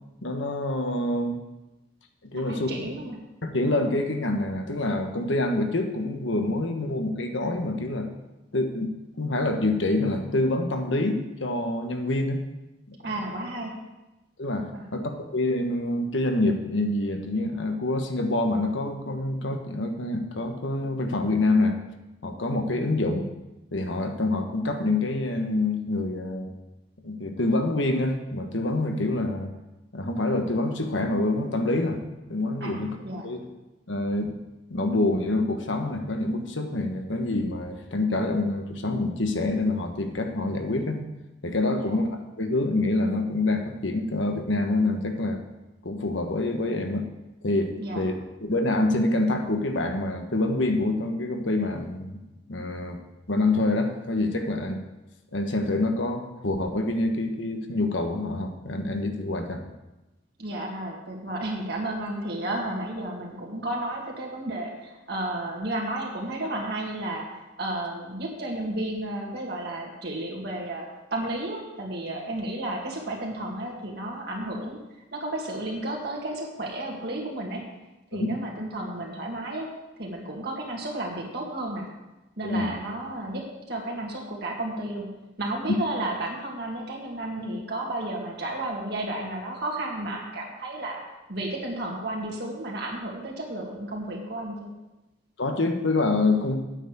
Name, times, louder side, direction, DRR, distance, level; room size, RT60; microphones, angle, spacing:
voice 1, 0.2-1.4 2.3-2.7 3.4-8.1 8.5-12.4 12.9-13.1 14.4-21.8 22.2-23.3 23.7-26.5 27.0-29.5 29.9-32.0 32.3-33.0 33.2-33.4 33.9-34.4 34.7-41.1 41.4-42.1 42.4-45.4 45.8-47.1 47.4-48.1 48.4-52.2 52.5-53.0 53.3-54.8 55.3-59.6 78.1-78.4 82.4-82.7 95.4-96.6, left 2 dB, 75° left, 5 dB, 1.3 m, -26 dB
voice 2, 2.3-3.2 13.0-13.7 14.7-14.8 32.6-33.3 41.7-42.0 47.8-48.0 60.4-67.3 67.6-74.8 75.1-77.6 78.1-79.7 80.0-81.9 82.4-85.1 85.4-91.0 91.3-94.7, right 1 dB, 55° right, -1 dB, 2.3 m, -32 dB
9.0 x 7.0 x 8.1 m, 1.0 s
head